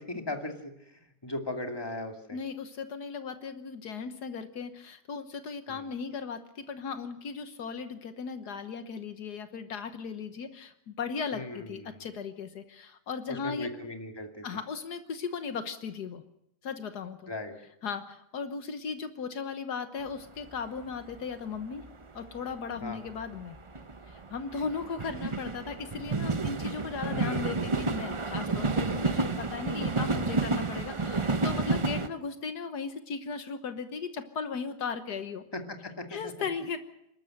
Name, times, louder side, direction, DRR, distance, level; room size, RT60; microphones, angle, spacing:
voice 1, 0.0-2.4 5.7-5.8 11.3-12.1 13.3-14.5 17.3-17.5 22.8-23.0 27.1-27.5 35.5-36.3, left 2 dB, 15° left, 4 dB, 2.5 m, -38 dB
voice 2, 2.3-13.7 14.4-16.2 16.6-17.3 17.8-21.8 22.1-23.6 24.1-35.4 36.1-36.8, left 5 dB, 75° left, 9 dB, 1.7 m, -37 dB
sound 1, 20.2-20.3 20.4-21.3 21.5-32.1, right 3 dB, 25° right, 0.7 m, -31 dB
29.0 x 13.0 x 7.8 m, 0.81 s
omnidirectional pair, 1.7 m